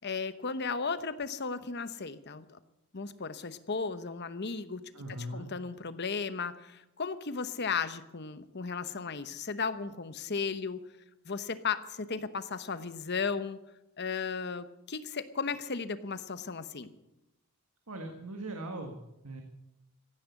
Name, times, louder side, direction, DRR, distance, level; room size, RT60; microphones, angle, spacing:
voice 1, 0.0-2.6 2.9-10.9 11.2-13.6 14.0-16.9, left 5 dB, 50° left, 12 dB, 0.9 m, -35 dB
voice 2, 4.9-5.5 17.9-19.4, right 1 dB, 85° right, 4 dB, 1.7 m, -40 dB
16.0 x 10.5 x 8.2 m, 0.92 s
head